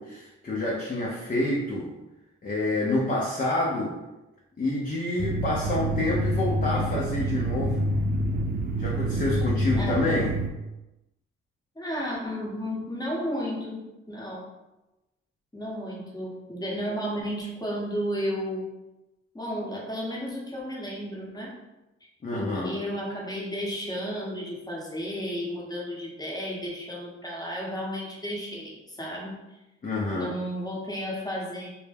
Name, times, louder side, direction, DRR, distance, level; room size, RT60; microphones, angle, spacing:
voice 1, 0.0-1.9 2.4-3.9 4.6-7.9 8.8-10.3 22.2-22.8 29.8-30.4, left 2 dB, 30° left, -4 dB, 0.6 m, -28 dB
sound 1, 5.2-10.5, right 1 dB, 30° right, 0.4 m, -27 dB
voice 2, 9.7-10.2 11.8-13.8 14.1-14.5 15.5-18.8 19.3-21.6 22.3-29.4 30.1-31.7, equal, 15° left, -4 dB, 1.0 m, -33 dB
2.1 x 2.1 x 3.3 m, 1.0 s
supercardioid pair, 55°, 30 cm